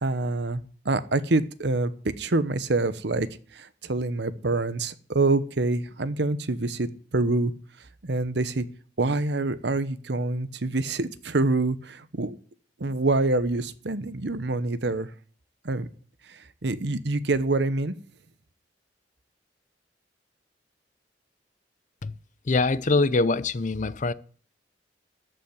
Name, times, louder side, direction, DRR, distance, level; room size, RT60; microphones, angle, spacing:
voice 1, 0.0-3.3 3.5-7.5 8.0-8.7 9.0-12.4 12.8-15.1 15.6-15.9 16.3-17.9, right 2 dB, 70° right, 0.9 m, -26 dB
voice 2, 22.4-24.1, left 3 dB, 45° left, 0.6 m, -23 dB
13.5 x 5.7 x 9.4 m
head